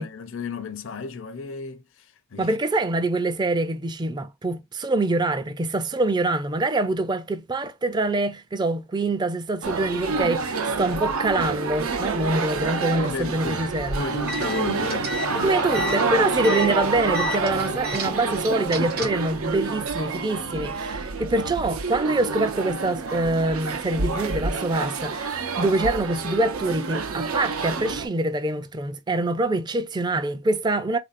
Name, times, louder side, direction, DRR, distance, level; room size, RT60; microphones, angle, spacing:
voice 1, 0.0-2.5 13.0-13.7 14.0-15.6 15.9-16.3, left 4 dB, 65° left, 0.6 m, -34 dB
voice 2, 2.4-14.0 15.3-31.0, right 2 dB, 20° right, 0.4 m, -25 dB
sound 1, 9.6-28.1, right 4 dB, 90° right, 0.7 m, -28 dB
sound 2, 14.1-19.3, left 1 dB, 50° right, 0.7 m, -34 dB
3.5 x 2.6 x 2.5 m
head